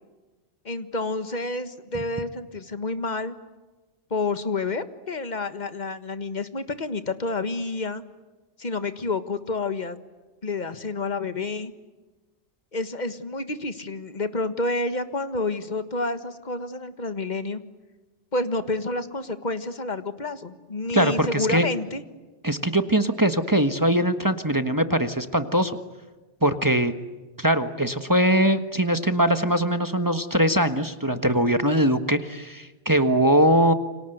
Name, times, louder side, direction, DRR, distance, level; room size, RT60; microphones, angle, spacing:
voice 1, 0.6-3.3 4.1-8.0 8.6-10.0 10.4-11.7 12.7-17.6 18.3-22.0, left 3 dB, 40° left, 11 dB, 1.7 m, -29 dB
voice 2, 20.9-21.7 22.4-25.8 26.4-26.9 27.4-33.7, right 1 dB, 15° right, 8 dB, 1.4 m, -21 dB
29.0 x 25.5 x 8.0 m, 1.2 s
omnidirectional pair, 1.2 m